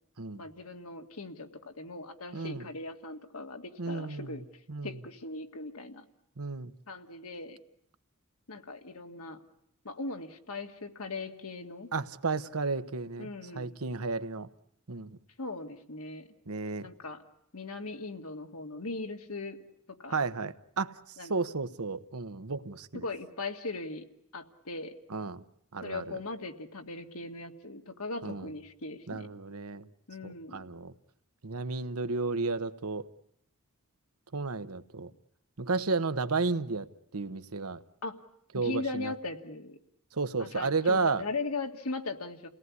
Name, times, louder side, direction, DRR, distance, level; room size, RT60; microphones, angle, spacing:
voice 1, 0.3-4.4 4.8-6.1 6.9-7.6 8.5-9.4 9.8-11.9 13.2-13.8 15.4-16.3 16.8-17.2 17.5-19.6 20.0-20.2 21.2-21.3 22.9-24.1 24.3-24.9 25.8-29.3 30.1-30.7 38.0-38.2 38.5-39.8 40.4-42.5, left 3 dB, 75° left, 2.1 m, -39 dB
voice 2, 2.3-2.7 3.8-4.4 4.7-4.9 6.4-6.7 11.9-13.3 13.6-14.5 14.9-15.2 16.5-16.9 20.1-21.0 21.3-23.0 25.1-25.4 25.7-26.2 28.2-28.5 29.1-29.9 30.2-30.9 31.4-33.0 34.3-35.1 35.6-36.9 37.1-37.8 38.5-39.1 40.1-41.2, right 4 dB, 75° right, 1.1 m, -32 dB
29.5 x 18.5 x 9.6 m
head